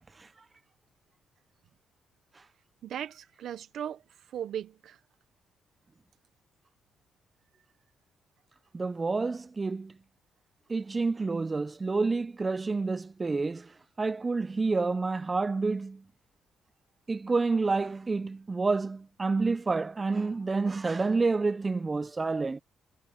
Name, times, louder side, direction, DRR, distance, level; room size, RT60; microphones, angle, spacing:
voice 1, 2.8-5.0, right 9 dB, 70° right, 1.0 m, -38 dB
voice 2, 8.7-10.0 10.7-13.7 14.0-16.0 17.1-22.6, right 3 dB, 25° right, 0.6 m, -29 dB
cardioid pair, 90°, 0 cm